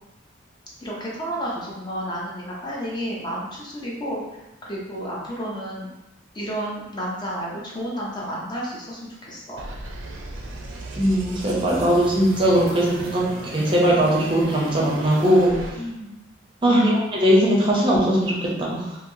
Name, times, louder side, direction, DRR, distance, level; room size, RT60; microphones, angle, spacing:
voice 1, 0.8-4.2 4.6-5.9 6.3-9.7 15.8-16.2, equal, 20° left, -5 dB, 0.5 m, -31 dB
sound 1, 9.6-15.7, right 2 dB, 85° right, 0.5 m, -36 dB
voice 2, 11.0-15.6 16.6-19.0, equal, 25° right, -4 dB, 0.6 m, -20 dB
2.9 x 2.6 x 2.7 m, 0.94 s
head